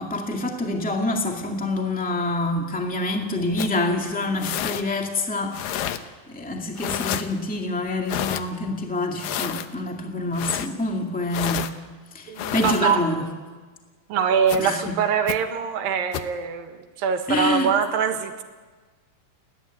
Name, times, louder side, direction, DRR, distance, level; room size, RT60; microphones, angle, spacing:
voice 1, 0.0-11.6 12.1-13.3 14.6-15.0 17.3-17.7, left 2 dB, 5° left, 2 dB, 1.2 m, -27 dB
sound 1, 3.6-3.8 4.4-4.8 5.5-6.0 6.8-7.3 8.1-8.4 9.2-9.7 10.3-10.7 11.3-11.7 12.4-12.8 14.5-14.6 15.3-15.4 16.1-16.3, left 11 dB, 80° left, 2.6 m, -29 dB
voice 2, 12.3-13.0 14.1-18.4, right 7 dB, 80° right, 7 dB, 3.3 m, -23 dB
30.0 x 11.5 x 9.2 m, 1.4 s
omnidirectional pair, 4.0 m